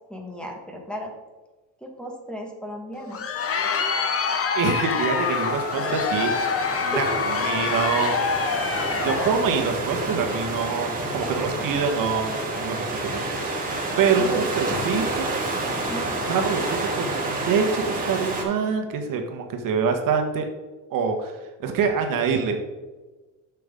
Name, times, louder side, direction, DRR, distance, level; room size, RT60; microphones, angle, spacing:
voice 1, 0.1-1.1 1.8-3.2 6.9-7.2 11.2-11.5 14.2-14.4 15.7-16.1, equal, ahead, -1 dB, 1.6 m, -35 dB
Crowd, 2.9-9.5, left 5 dB, 35° left, 1.1 m, -26 dB
voice 2, 4.5-6.5 6.8-7.1 7.4-8.4 9.0-13.2 13.5-13.7 14.0-15.3 16.2-20.5 20.9-21.3 21.6-22.6, right 5 dB, 55° right, 5 dB, 1.4 m, -25 dB
sound 1, 4.7-18.4, right 2 dB, 20° right, 2.8 m, -29 dB
9.1 x 7.1 x 3.7 m, 1.2 s
cardioid pair, 110°, 39 cm